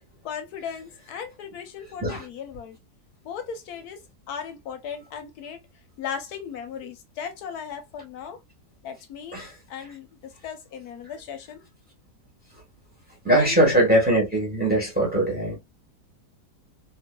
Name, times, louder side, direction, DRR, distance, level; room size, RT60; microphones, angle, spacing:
voice 1, 0.2-2.8 3.2-4.0 4.3-5.6 6.0-8.4 8.8-9.4 9.7-10.1 10.4-11.6 13.4-13.8, left 7 dB, 75° left, 1.0 m, -37 dB
voice 2, 13.2-15.6, right 1 dB, 5° right, 1.0 m, -21 dB
2.8 x 2.3 x 2.2 m
omnidirectional pair, 1.7 m